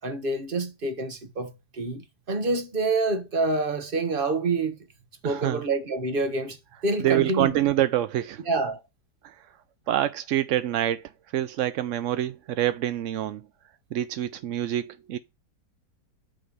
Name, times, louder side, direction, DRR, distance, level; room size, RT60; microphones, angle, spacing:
voice 1, 0.0-4.8 5.2-7.5 8.5-8.8, right 3 dB, 35° right, 1.3 m, -27 dB
voice 2, 5.2-5.6 6.7-8.4 9.2-9.3 9.9-13.4 13.9-15.2, right 12 dB, 75° right, 0.7 m, -26 dB
8.8 x 3.2 x 5.4 m
omnidirectional pair, 1.8 m